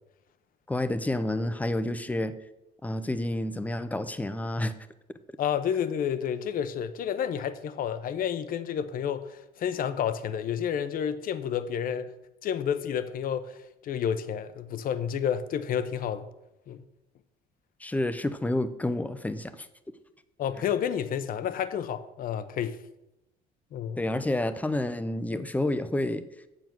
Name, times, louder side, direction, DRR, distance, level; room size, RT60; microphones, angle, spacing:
voice 1, 0.7-2.4 2.8-4.7 17.8-19.7 24.0-26.2, left 1 dB, 10° left, 0.6 m, -29 dB
voice 2, 5.4-12.0 12.4-13.5 13.8-16.2 16.7-16.8 20.4-22.8 23.7-24.0, left 8 dB, 55° left, 0.8 m, -30 dB
7.7 x 7.2 x 6.0 m
cardioid pair, 110°, 17 cm